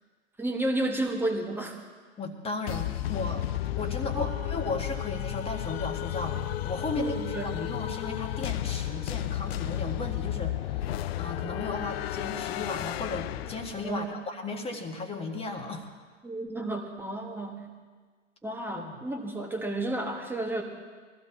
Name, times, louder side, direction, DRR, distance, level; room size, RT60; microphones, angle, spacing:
voice 1, 0.4-1.8 4.1-4.3 6.9-7.5 13.8-14.2 16.2-17.7 18.4-20.6, right 1 dB, 5° right, 2 dB, 1.6 m, -32 dB
voice 2, 2.2-3.4 3.8-15.9 18.7-18.9, left 3 dB, 15° left, 3 dB, 1.8 m, -35 dB
sound 1, 2.7-14.1, left 13 dB, 50° left, 0.5 m, -33 dB
23.0 x 15.0 x 2.9 m, 1.5 s
figure-of-eight pair, 110°, 39 cm